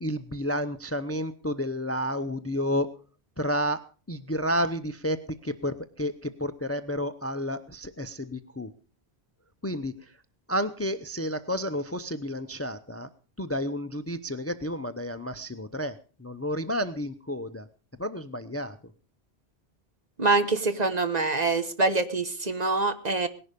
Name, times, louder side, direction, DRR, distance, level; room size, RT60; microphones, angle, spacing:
voice 1, 0.0-2.9 3.4-3.8 4.1-8.7 9.6-10.1 10.5-13.1 13.4-17.7 18.0-18.8, equal, 15° left, 13 dB, 0.6 m, -31 dB
voice 2, 20.2-23.3, right 3 dB, 40° right, 10 dB, 1.2 m, -25 dB
18.5 x 11.0 x 5.2 m, 0.37 s
omnidirectional pair, 1.1 m